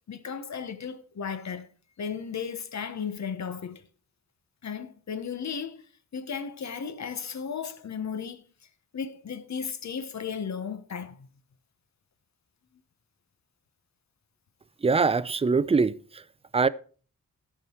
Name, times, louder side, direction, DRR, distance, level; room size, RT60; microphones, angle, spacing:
voice 1, 0.1-1.7 2.0-3.8 4.6-5.8 6.1-8.4 8.9-11.3, left 6 dB, 60° left, 1.0 m, -35 dB
voice 2, 14.8-16.2 16.5-16.7, right 4 dB, 20° right, 0.4 m, -23 dB
14.0 x 6.0 x 4.4 m
wide cardioid pair, 120°, 31 cm